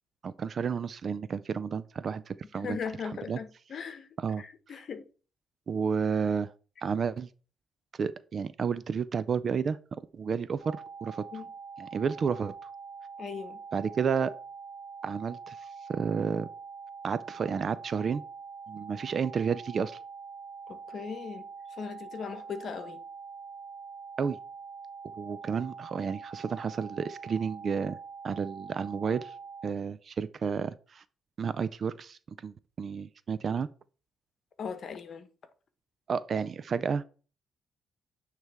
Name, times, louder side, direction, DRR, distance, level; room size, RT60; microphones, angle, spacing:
voice 1, 0.2-2.8 3.3-3.4 4.2-4.4 5.7-6.5 6.8-7.3 8.0-9.8 10.1-11.2 11.8-12.5 13.7-14.3 15.0-15.6 15.9-16.5 17.0-18.2 18.7-20.0 24.2-24.4 25.2-28.0 28.2-29.3 29.6-31.0 31.4-33.7 36.1-37.0, right 6 dB, 50° right, 0.3 m, -31 dB
voice 2, 2.5-4.1 4.4-5.0 11.3-11.5 13.2-13.6 20.7-21.5 21.8-23.0 34.6-35.3, left 6 dB, 55° left, 1.0 m, -38 dB
sound 1, 10.6-29.7, right 5 dB, 20° right, 1.1 m, -45 dB
9.1 x 3.3 x 3.5 m
cardioid pair, 90°, 0 cm